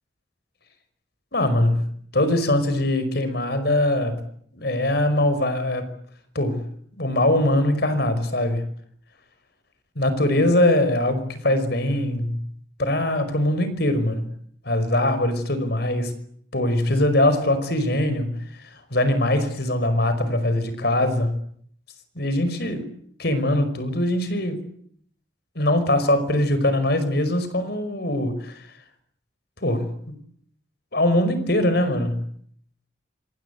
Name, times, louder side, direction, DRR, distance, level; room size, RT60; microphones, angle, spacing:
voice 1, 1.3-4.2 4.5-5.9 6.4-6.7 7.0-8.7 10.0-12.5 12.8-14.3 14.7-16.1 16.5-18.4 18.9-21.4 22.2-22.9 23.2-24.7 25.6-28.6 29.6-29.9 30.9-32.3, left 1 dB, 60° left, 11 dB, 5.3 m, -22 dB
27.0 x 26.5 x 8.3 m, 0.65 s
head